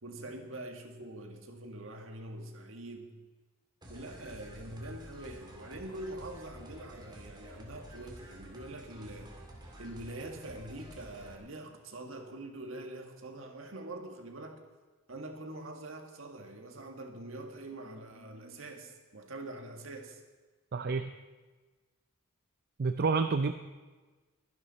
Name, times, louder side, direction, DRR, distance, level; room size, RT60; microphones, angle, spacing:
voice 1, 0.0-3.1 3.9-9.4 9.8-14.6 15.1-20.2, right 1 dB, 70° right, 4 dB, 1.8 m, -44 dB
sound 1, 3.8-11.4, equal, 20° right, 2.4 m, -50 dB
voice 2, 20.7-21.1 22.8-23.5, right 4 dB, 50° right, 8 dB, 0.5 m, -29 dB
22.5 x 11.0 x 4.2 m, 1.3 s
head